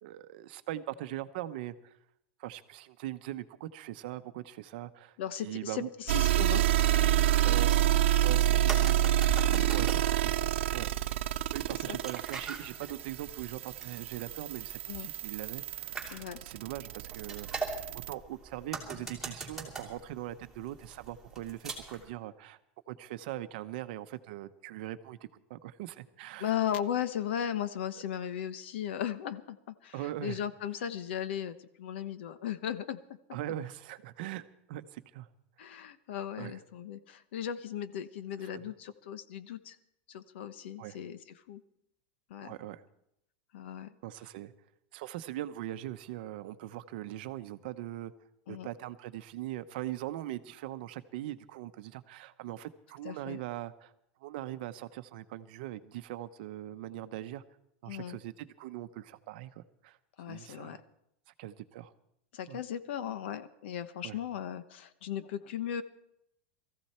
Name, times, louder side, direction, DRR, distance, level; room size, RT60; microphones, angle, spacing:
voice 1, 0.0-1.9 2.4-5.2 5.4-5.9 7.4-7.8 8.2-9.2 9.7-10.9 11.5-16.0 16.4-17.7 17.9-22.6 22.9-26.5 29.9-30.4 33.3-35.3 36.4-36.6 38.4-38.6 40.8-41.0 42.4-42.8 44.0-44.5 44.9-48.1 48.5-53.9 54.2-57.4 57.8-60.0 60.3-60.8 61.4-61.9 62.5-62.6 64.0-64.2, right 14 dB, 50° right, 11 dB, 0.8 m, -41 dB
voice 2, 5.2-6.6 9.5-9.7 11.9-12.0 14.9-15.1 16.1-16.4 26.4-33.0 35.6-39.8 40.1-41.2 41.5-41.6 42.3-42.6 43.5-43.9 48.5-48.7 53.0-53.4 57.9-58.2 60.2-60.8 62.3-65.8, left 9 dB, 65° left, 13 dB, 1.1 m, -37 dB
sound 1, 6.1-18.1, right 12 dB, 80° right, 0.6 m, -28 dB
sound 2, 8.3-22.1, right 4 dB, 5° right, 2.7 m, -43 dB
21.0 x 14.5 x 4.4 m, 0.78 s
supercardioid pair, 180°, 6 cm